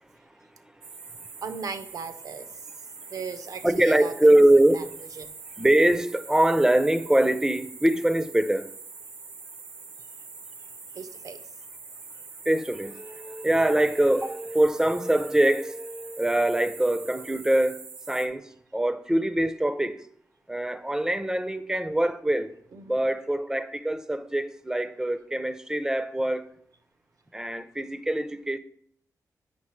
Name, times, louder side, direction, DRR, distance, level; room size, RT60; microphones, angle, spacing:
sound 1, 0.8-18.3, right 4 dB, 85° right, 1.0 m, -44 dB
voice 1, 1.4-2.5 3.1-4.1 4.7-4.8 5.2-5.3 10.9-11.4 22.7-23.0, right 5 dB, 65° right, 0.6 m, -37 dB
voice 2, 3.6-5.0 5.6-8.7 12.5-20.1 20.5-22.5 22.8-26.5 27.3-28.6, right 1 dB, 10° right, 0.5 m, -23 dB
8.6 x 5.6 x 3.1 m
cardioid pair, 95°, 7 cm